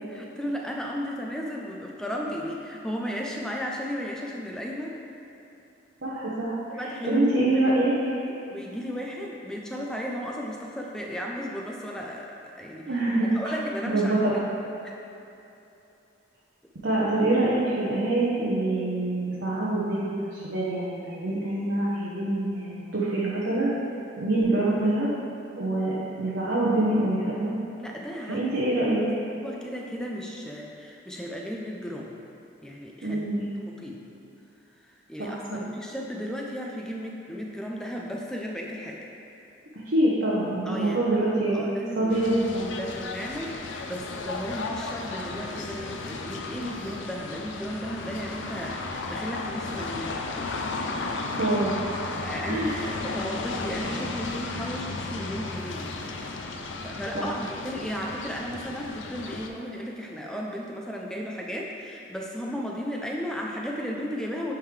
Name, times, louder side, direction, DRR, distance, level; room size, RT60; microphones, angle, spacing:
voice 1, 0.0-5.0 6.7-7.2 7.5-7.7 8.3-12.9 13.2-14.1 14.8-14.9 27.8-28.9 29.3-32.1 32.6-33.2 33.7-34.0 35.1-39.0 40.7-41.3 41.5-50.2 52.2-56.0 56.8-64.5, equal, 5° left, -2 dB, 0.4 m, -35 dB
voice 2, 6.0-7.9 12.9-13.3 13.9-14.3 16.8-23.7 24.2-25.1 25.5-27.5 28.3-29.0 33.0-33.5 35.2-35.6 39.8-41.6 42.0-42.7 51.3-52.0 52.5-52.8 57.1-57.3, right 2 dB, 70° right, -7 dB, 0.8 m, -25 dB
sound 1, 42.1-59.5, left 3 dB, 75° left, 0.5 m, -34 dB
9.0 x 3.7 x 3.2 m, 2.8 s
head